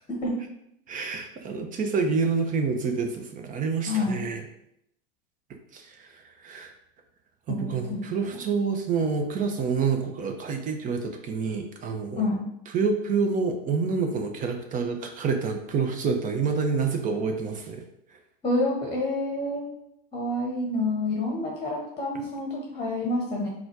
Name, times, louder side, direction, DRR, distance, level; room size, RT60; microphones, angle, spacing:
voice 1, 0.1-0.4 3.9-4.2 7.5-8.1 12.2-12.5 18.4-19.7 20.1-23.5, left 2 dB, 20° left, -1 dB, 1.0 m, -28 dB
voice 2, 0.9-4.4 5.7-6.7 7.5-12.3 12.7-17.8, right 5 dB, 25° right, 5 dB, 0.7 m, -28 dB
3.9 x 2.4 x 4.6 m, 0.77 s
hypercardioid pair, 110°, 30 cm